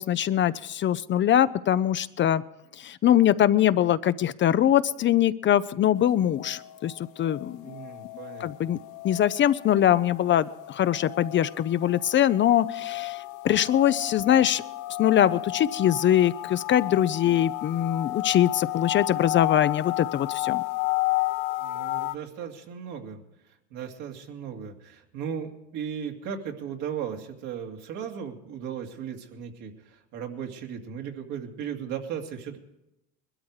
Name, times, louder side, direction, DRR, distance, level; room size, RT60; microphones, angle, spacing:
voice 1, 0.0-2.4 2.8-6.9 7.2-7.7 8.4-8.8 9.0-14.6 15.0-20.6, left 11 dB, 35° left, 14 dB, 0.5 m, -22 dB
sound 1, 5.9-22.2, left 20 dB, 60° left, 0.8 m, -32 dB
voice 2, 7.6-8.8 21.6-32.6, right 8 dB, 65° right, 2 dB, 2.3 m, -37 dB
21.0 x 12.5 x 4.8 m, 0.90 s
supercardioid pair, 100°, 33 cm